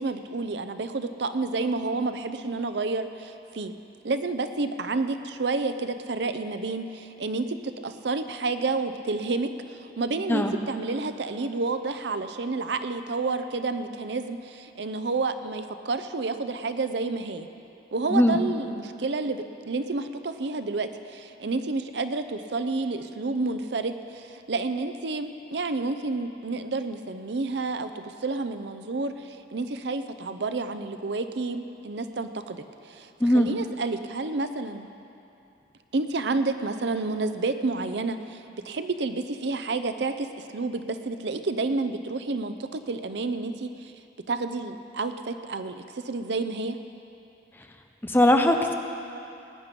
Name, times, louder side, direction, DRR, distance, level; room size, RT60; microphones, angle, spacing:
voice 1, 0.0-3.7 4.0-17.5 17.9-34.9 35.9-43.9 44.3-46.8, right 3 dB, 70° right, 9 dB, 0.6 m, -30 dB
voice 2, 48.0-48.7, left 1 dB, 10° left, 4 dB, 0.7 m, -20 dB
19.0 x 9.8 x 5.3 m, 2.7 s
head